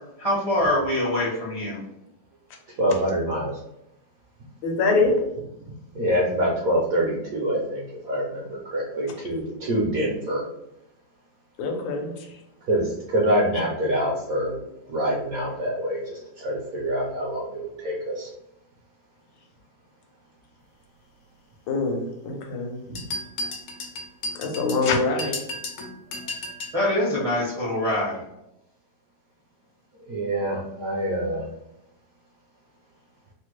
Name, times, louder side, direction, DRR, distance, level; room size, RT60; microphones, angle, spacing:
voice 1, 0.2-1.8 26.7-28.2, left 1 dB, 40° right, -7 dB, 0.5 m, -24 dB
voice 2, 2.8-3.5 5.6-10.5 12.6-14.6 14.9-18.3 22.9-23.0 23.4-23.5 26.2-26.3 30.1-31.5, right 1 dB, 70° right, -3 dB, 0.8 m, -26 dB
voice 3, 4.6-5.1 11.6-12.3 21.7-22.8 24.3-25.4, left 3 dB, 85° left, 2 dB, 1.4 m, -24 dB
sound 1, 23.0-26.8, left 1 dB, 65° left, 1.1 m, -34 dB
3.3 x 2.1 x 3.0 m, 0.85 s
omnidirectional pair, 2.1 m